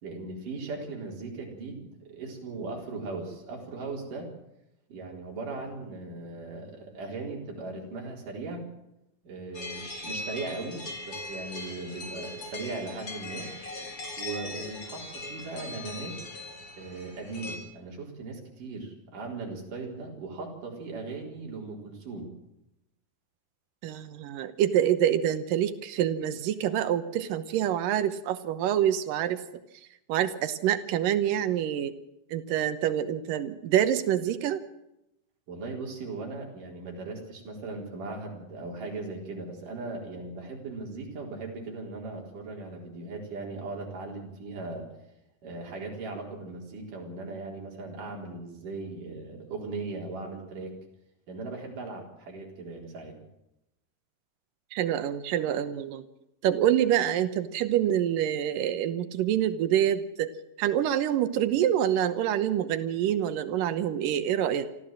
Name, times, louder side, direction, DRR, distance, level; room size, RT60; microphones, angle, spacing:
voice 1, 0.0-4.3 4.9-8.6 9.2-13.5 14.2-16.2 16.7-22.4 35.5-44.9 45.4-50.8 51.3-53.2, right 3 dB, 70° right, 0 dB, 5.6 m, -38 dB
sound 1, 9.5-17.6, left 2 dB, 40° left, 4.5 m, -39 dB
voice 2, 23.8-29.4 30.1-31.9 32.3-34.6 54.7-56.0 56.4-60.3 60.6-64.7, right 10 dB, 85° right, 12 dB, 2.7 m, -26 dB
26.0 x 14.0 x 7.6 m, 0.87 s
omnidirectional pair, 3.9 m